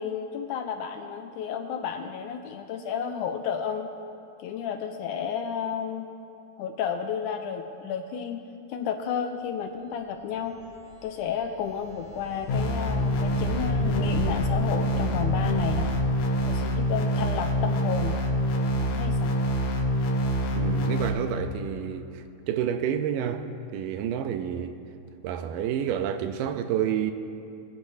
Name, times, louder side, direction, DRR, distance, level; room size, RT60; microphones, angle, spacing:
voice 1, 0.0-3.9 4.4-6.1 6.6-8.4 8.7-10.6 11.0-15.9 16.5-18.2 18.8-19.3, left 7 dB, 80° left, 1.9 m, -32 dB
sound 1, 10.2-16.6, left 1 dB, 25° right, 1.6 m, -37 dB
sound 2, 12.5-21.1, equal, 65° left, 2.4 m, -26 dB
voice 2, 20.5-23.5 23.7-24.8 25.2-27.1, right 9 dB, 85° right, 2.3 m, -29 dB
22.0 x 10.5 x 2.7 m
omnidirectional pair, 3.9 m